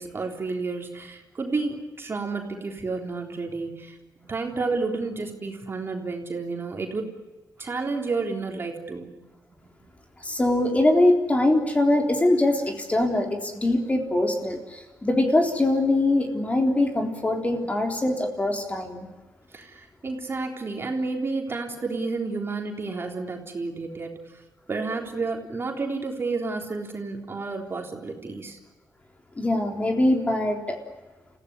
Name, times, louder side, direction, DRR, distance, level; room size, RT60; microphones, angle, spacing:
voice 1, 0.0-7.1 7.6-9.2 19.5-24.4 24.7-28.6, right 3 dB, 35° right, 2 dB, 3.7 m, -31 dB
voice 2, 10.2-19.1 29.4-30.8, left 1 dB, 20° left, 3 dB, 3.8 m, -23 dB
29.0 x 16.5 x 9.8 m, 1.2 s
cardioid pair, 100°, 7 cm